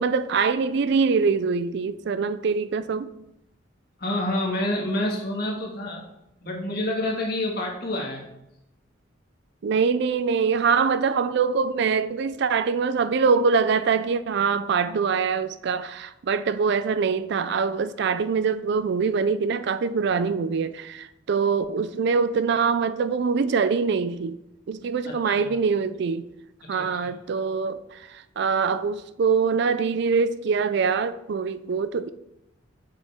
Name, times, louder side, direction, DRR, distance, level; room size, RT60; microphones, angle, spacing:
voice 1, 0.0-3.3 9.6-24.4 24.7-26.3 26.7-32.1, right 5 dB, 65° right, 0.4 m, -24 dB
voice 2, 4.0-6.0 6.4-8.2 25.0-25.6 26.7-27.1, left 1 dB, 55° left, 1.8 m, -28 dB
7.4 x 6.7 x 3.6 m
head